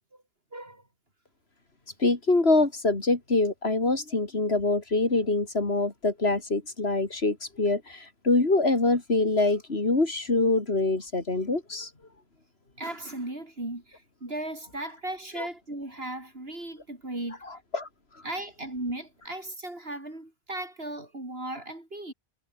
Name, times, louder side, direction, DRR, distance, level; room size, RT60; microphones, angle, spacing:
voice 1, 0.5-0.8 12.8-17.4 18.2-22.1, right 1 dB, 75° right, 5.7 m, -36 dB
voice 2, 2.0-11.9 17.7-17.9, left 2 dB, 85° left, 3.8 m, -25 dB
omnidirectional pair, 1.0 m